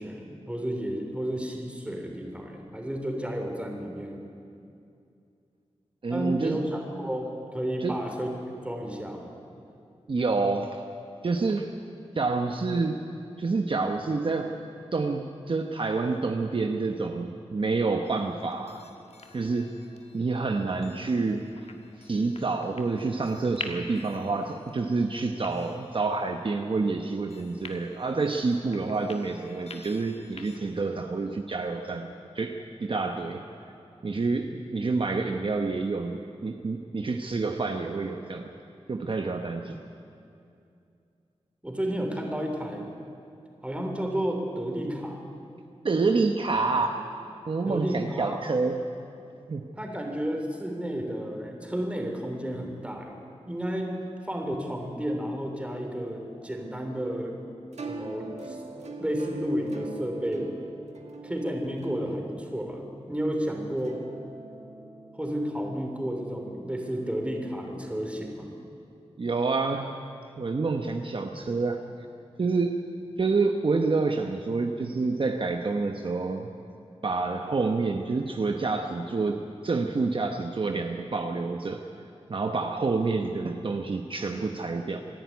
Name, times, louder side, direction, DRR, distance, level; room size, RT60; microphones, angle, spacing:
voice 1, 0.0-4.2 6.1-8.3 8.6-9.3 41.6-42.9 43.6-45.2 47.7-48.4 49.8-53.2 53.5-54.0 54.3-57.4 57.9-58.6 59.0-60.5 61.2-64.0 65.1-68.5, equal, 10° right, 2 dB, 3.3 m, -32 dB
voice 2, 6.0-6.6 7.8-7.9 10.1-10.8 11.2-11.7 12.1-13.0 13.4-14.5 14.9-18.8 19.3-19.7 20.1-21.4 22.0-33.5 34.0-38.5 38.9-39.8 45.8-47.0 47.5-48.9 49.5-49.7 69.2-69.9 70.4-71.8 72.4-72.8 73.2-76.5 77.0-81.8 82.3-85.0, right 3 dB, 50° right, 5 dB, 1.0 m, -28 dB
sound 1, 18.0-30.6, left 3 dB, 65° left, 1.7 m, -47 dB
sound 2, 55.7-69.7, right 3 dB, 85° right, 1.9 m, -45 dB
26.0 x 11.0 x 9.5 m, 2.5 s
wide cardioid pair, 90°, 11 cm